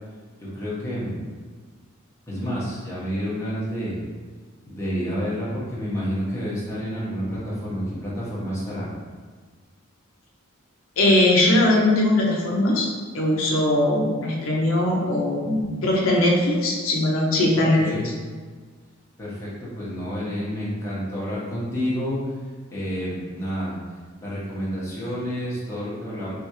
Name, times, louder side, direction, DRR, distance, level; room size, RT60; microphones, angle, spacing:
voice 1, 0.4-1.1 2.3-4.0 4.7-8.9 17.5-18.1 19.2-22.4 22.7-23.8 24.2-26.3, equal, 15° left, -9 dB, 1.1 m, -29 dB
voice 2, 11.0-12.9 13.1-17.8, left 1 dB, 70° left, -3 dB, 0.6 m, -20 dB
3.5 x 3.4 x 3.0 m, 1.5 s
head